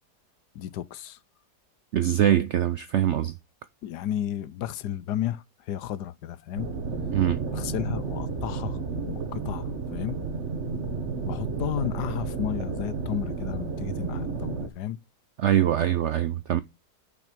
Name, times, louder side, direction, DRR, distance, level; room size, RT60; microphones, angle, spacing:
voice 1, 0.5-1.2 3.8-6.7 7.5-8.8 9.1-10.2 11.2-15.0, left 11 dB, 80° left, 1.3 m, -33 dB
voice 2, 1.9-3.3 7.1-7.4 15.4-16.6, right 11 dB, 75° right, 0.6 m, -23 dB
sound 1, 6.6-14.7, right 4 dB, 45° right, 1.3 m, -32 dB
6.3 x 5.9 x 5.1 m
omnidirectional pair, 1.8 m